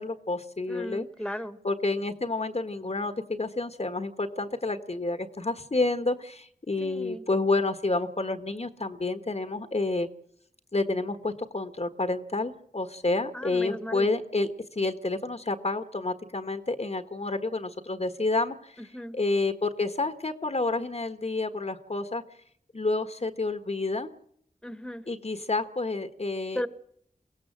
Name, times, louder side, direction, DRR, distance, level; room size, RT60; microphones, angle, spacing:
voice 1, 0.0-1.1 1.6-10.1 10.7-18.8 19.1-22.2 22.7-24.1 25.1-26.6, left 3 dB, 45° left, 9 dB, 1.5 m, -29 dB
voice 2, 0.7-1.6 6.8-7.2 13.3-14.1 18.9-19.2 24.6-25.0 26.5-26.7, equal, 5° left, 11 dB, 1.7 m, -36 dB
22.5 x 16.5 x 7.6 m, 0.67 s
cardioid pair, 40°, 15 cm